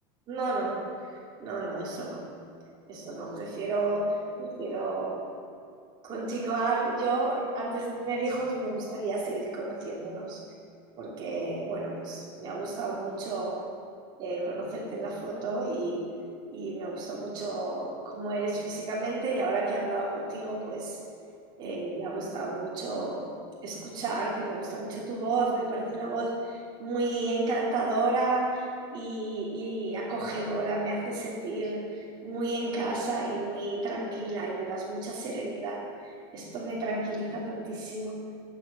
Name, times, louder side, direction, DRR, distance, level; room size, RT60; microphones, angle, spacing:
voice 1, 0.3-0.9 1.4-2.2 2.9-5.2 6.0-10.4 11.0-13.6 14.2-16.0 16.5-21.0 21.6-23.2 23.6-31.8 32.2-38.2, right 2 dB, 35° right, -4 dB, 2.8 m, -31 dB
12.0 x 8.0 x 7.3 m, 2.5 s
supercardioid pair, 155°, 13 cm